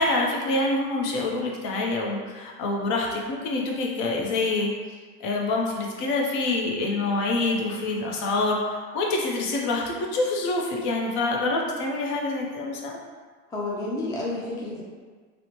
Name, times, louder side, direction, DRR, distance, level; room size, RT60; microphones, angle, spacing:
voice 1, 0.0-4.7 5.2-13.0, left 2 dB, 60° left, -1 dB, 0.6 m, -26 dB
voice 2, 13.5-14.8, left 2 dB, 10° left, -4 dB, 0.3 m, -30 dB
2.9 x 2.0 x 2.8 m, 1.5 s
supercardioid pair, 120°, 34 cm